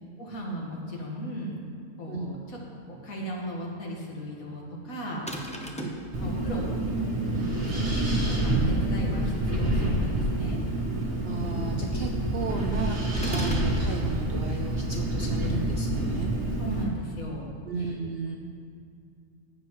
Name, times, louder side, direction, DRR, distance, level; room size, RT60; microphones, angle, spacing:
voice 1, 0.2-1.6 2.0-2.6 2.9-5.3 5.5-5.6 6.2-6.7 7.3-10.6 16.6-17.5 17.8-17.9, equal, 65° left, -2 dB, 2.0 m, -36 dB
sound 1, 5.3-6.1 13.2-13.7, equal, 10° left, 0.4 m, -36 dB
Wind, 6.1-16.8, right 1 dB, 40° right, 1.7 m, -27 dB
voice 2, 11.2-16.3 17.7-18.4, right 4 dB, 60° right, 1 dB, 0.6 m, -34 dB
15.0 x 7.6 x 3.1 m, 2.4 s
omnidirectional pair, 1.6 m